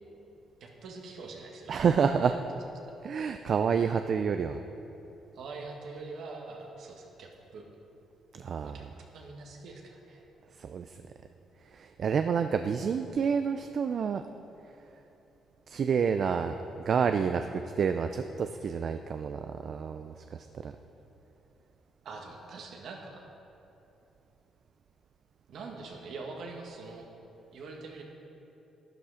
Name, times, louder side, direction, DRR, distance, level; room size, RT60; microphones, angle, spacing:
voice 1, 0.6-1.7 2.8-2.9 5.4-7.7 8.6-8.9 9.1-10.2 22.0-23.2 25.5-27.1 27.5-28.0, right 3 dB, 70° right, 1 dB, 1.8 m, -44 dB
voice 2, 1.7-2.4 3.0-4.6 8.3-8.9 10.6-11.0 11.7-14.2 15.7-20.7, right 6 dB, 55° right, 8 dB, 0.4 m, -29 dB
12.0 x 10.5 x 5.0 m, 3.0 s
cardioid pair, 90°, 0 cm